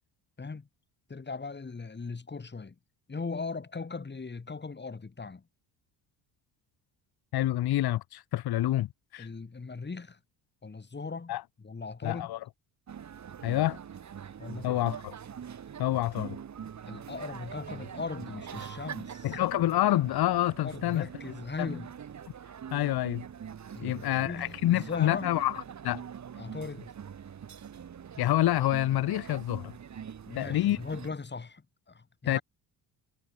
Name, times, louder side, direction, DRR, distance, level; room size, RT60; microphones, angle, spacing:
voice 1, 0.4-0.7 1.1-2.8 3.1-5.4 9.2-10.2 10.6-11.4 11.6-12.3 14.4-14.8 16.9-19.4 20.6-21.9 23.7-25.3 26.4-26.9 30.3-32.4, left 4 dB, 25° left, 5.9 m, -39 dB
voice 2, 7.3-9.3 11.3-11.4 12.0-12.4 13.4-13.8 14.6-15.1 15.8-16.4 19.2-21.1 22.7-23.2 23.8-26.0 28.2-29.7 30.3-30.8 32.3-32.4, left 14 dB, 60° left, 1.2 m, -27 dB
sound 1, 12.9-31.1, right 8 dB, 40° right, 2.2 m, -44 dB
cardioid pair, 100°, 42 cm